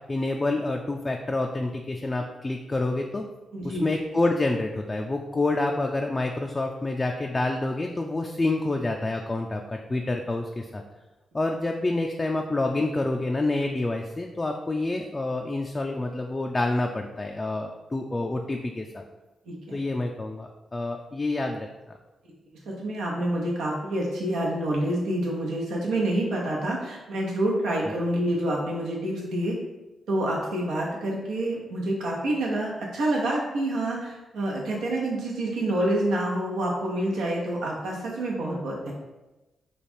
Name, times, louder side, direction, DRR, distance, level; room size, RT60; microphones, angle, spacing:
voice 1, 0.1-3.2 3.6-10.8 11.3-19.0 19.7-21.7, left 2 dB, 30° left, 2 dB, 0.4 m, -28 dB
voice 2, 3.5-3.9 19.5-19.8 22.6-29.6 30.1-38.9, right 1 dB, 80° right, -3 dB, 0.9 m, -27 dB
3.2 x 2.4 x 4.3 m, 1.1 s
supercardioid pair, 45°, 0 cm